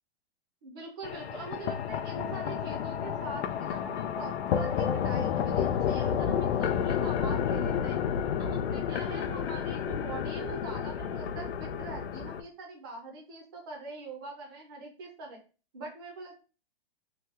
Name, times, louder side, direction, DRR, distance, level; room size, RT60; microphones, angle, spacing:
voice 1, 0.6-8.0 8.4-15.4 15.7-16.4, right 3 dB, 25° right, 0 dB, 0.5 m, -43 dB
sound 1, 1.0-12.4, left 8 dB, 85° left, 0.5 m, -30 dB
2.9 x 2.3 x 3.1 m, 0.35 s
hypercardioid pair, 180°, 31 cm